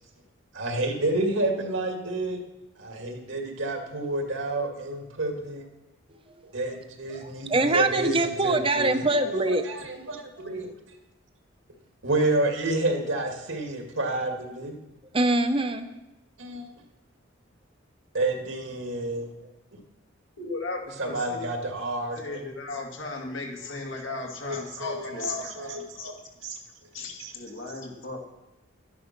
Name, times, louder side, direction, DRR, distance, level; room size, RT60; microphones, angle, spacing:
voice 1, 0.5-2.4 2.8-5.6 6.5-10.7 12.0-14.7 16.4-16.7 18.1-19.3 19.7-19.8 21.0-22.4 24.1-24.2 24.4-26.1 26.4-26.6 27.2-27.3, right 2 dB, 75° right, 3 dB, 2.2 m, -29 dB
voice 2, 7.1-9.6 15.1-15.9, right 2 dB, 25° right, 8 dB, 0.9 m, -24 dB
voice 3, 20.4-21.4 22.2-25.5 26.0-26.1 26.9-28.2, left 3 dB, 75° left, 1 dB, 2.6 m, -35 dB
12.0 x 10.5 x 6.0 m, 0.96 s
head